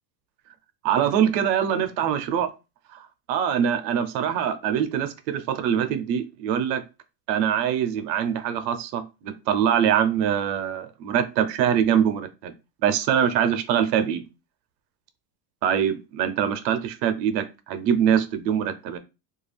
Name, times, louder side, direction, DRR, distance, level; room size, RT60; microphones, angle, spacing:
voice 1, 0.8-2.5 2.9-3.0 3.3-6.8 7.3-12.5 12.8-14.2 15.6-19.0, right 9 dB, 85° right, 0.6 m, -23 dB
2.3 x 2.3 x 3.2 m
cardioid pair, 165°, 48 cm